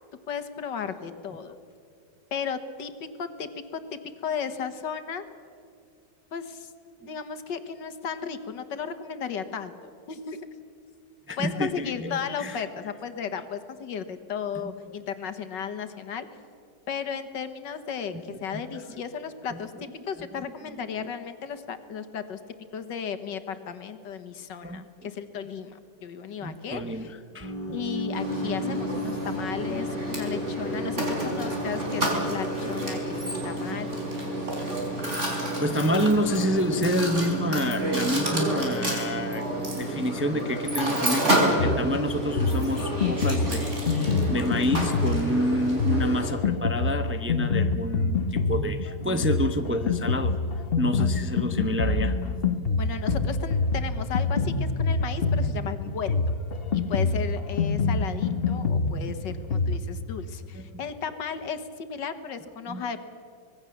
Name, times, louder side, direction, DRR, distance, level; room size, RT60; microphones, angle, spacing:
voice 1, 0.3-1.5 2.3-2.9 3.2-5.2 6.3-6.7 7.1-9.8 10.1-10.5 11.4-16.3 16.9-22.4 22.7-27.1 27.7-34.0 34.4-34.5 51.0-51.1 52.8-56.3 56.7-63.1, left 7 dB, 85° left, 9 dB, 2.0 m, -35 dB
voice 2, 11.3-12.6 14.6-14.7 18.1-19.0 19.5-19.6 20.2-20.3 24.6-24.9 26.4-27.8 32.7-32.8 35.6-39.4 39.7-50.3 50.8-52.4 60.5-60.8 62.7-62.8, equal, 10° right, 7 dB, 0.5 m, -29 dB
sound 1, 27.4-40.6, right 1 dB, 70° right, 5.1 m, -36 dB
Mechanisms, 28.1-46.3, right 1 dB, 40° right, 4.8 m, -29 dB
Drum kit, 41.6-59.8, left 4 dB, 40° left, 1.1 m, -26 dB
25.0 x 20.0 x 7.2 m, 2.4 s
omnidirectional pair, 1.9 m